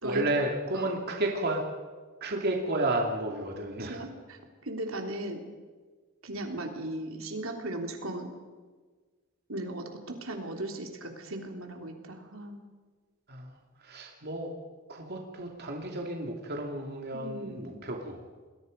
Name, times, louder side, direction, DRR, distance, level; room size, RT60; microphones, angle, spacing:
voice 1, 0.0-1.6 2.2-4.1 13.3-14.5 14.9-18.2, right 1 dB, 50° right, 1 dB, 2.7 m, -32 dB
voice 2, 3.8-5.4 6.2-8.3 9.5-12.6 17.1-17.8, right 1 dB, 75° right, 3 dB, 3.2 m, -37 dB
29.0 x 21.5 x 5.3 m, 1.4 s
head